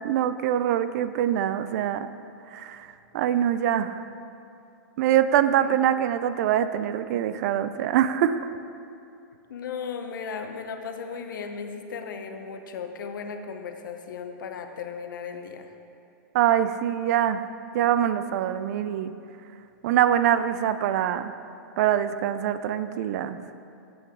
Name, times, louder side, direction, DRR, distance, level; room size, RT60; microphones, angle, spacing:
voice 1, 0.0-2.1 2.5-2.9 3.1-4.0 5.0-8.4 16.3-17.4 17.7-19.1 19.8-21.3 21.8-23.4, right 10 dB, 55° right, 12 dB, 0.4 m, -24 dB
voice 2, 9.5-15.7, left 6 dB, 80° left, 6 dB, 0.8 m, -36 dB
8.8 x 7.7 x 3.7 m, 2.6 s
hypercardioid pair, 140°, 10 cm